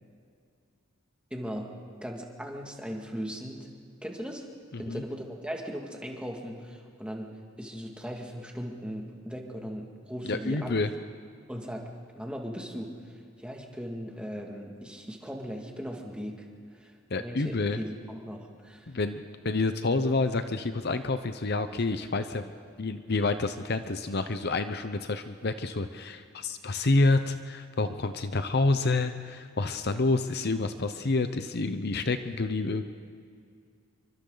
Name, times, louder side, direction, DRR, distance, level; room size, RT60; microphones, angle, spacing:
voice 1, 1.3-1.7 2.0-3.7 4.0-4.4 4.8-10.7 11.5-11.8 12.1-13.1 13.4-16.5 16.7-18.9, equal, 5° right, 0 dB, 2.2 m, -38 dB
voice 2, 10.2-10.9 17.1-17.8 18.9-22.4 22.8-32.8, left 3 dB, 55° left, 9 dB, 0.8 m, -28 dB
28.0 x 24.0 x 4.0 m, 2.3 s
head